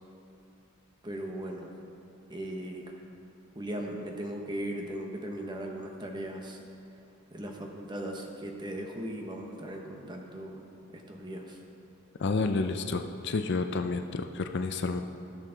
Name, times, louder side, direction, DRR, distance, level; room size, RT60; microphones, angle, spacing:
voice 1, 1.0-1.7 2.3-3.0 3.5-6.6 7.3-10.6 10.9-11.6, right 1 dB, 20° right, 1 dB, 0.9 m, -38 dB
voice 2, 12.2-15.0, left 3 dB, 50° left, 7 dB, 0.4 m, -30 dB
16.0 x 6.6 x 3.9 m, 2.7 s
head